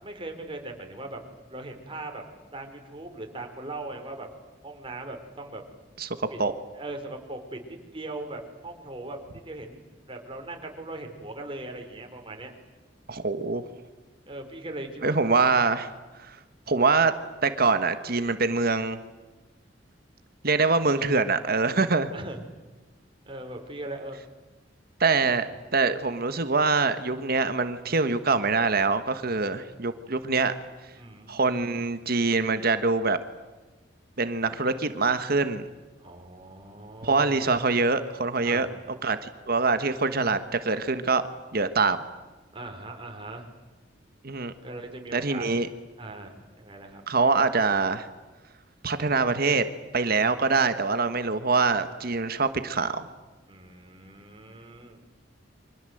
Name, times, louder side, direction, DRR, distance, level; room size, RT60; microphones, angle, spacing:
voice 1, 0.0-1.2 1.5-2.2 2.5-4.3 4.6-5.6 6.3-6.4 6.7-9.8 10.1-12.5 14.3-15.3 22.1-22.4 23.3-24.2 31.0-31.4 36.0-37.5 38.4-38.7 42.5-43.5 44.6-45.5 46.0-47.0 53.5-55.0, right 2 dB, 30° right, 4 dB, 4.5 m, -39 dB
voice 2, 13.1-13.6 15.0-15.9 16.3-16.4 16.7-17.1 17.4-19.0 20.4-22.1 25.0-25.5 25.7-30.5 31.3-33.2 34.2-35.7 37.0-41.2 41.5-42.0 44.2-44.5 45.1-45.7 47.1-48.1 48.8-49.7 49.9-53.0, right 4 dB, 55° right, 10 dB, 1.4 m, -24 dB
30.0 x 25.0 x 7.9 m, 1.2 s
head